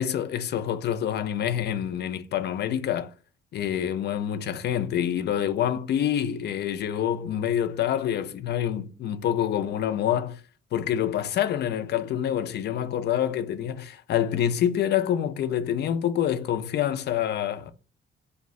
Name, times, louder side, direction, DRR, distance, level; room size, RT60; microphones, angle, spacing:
voice 1, 0.0-3.1 3.5-10.4 10.7-17.7, left 10 dB, 55° left, 0.4 m, -27 dB
2.4 x 2.1 x 3.5 m
cardioid pair, 90°, 20 cm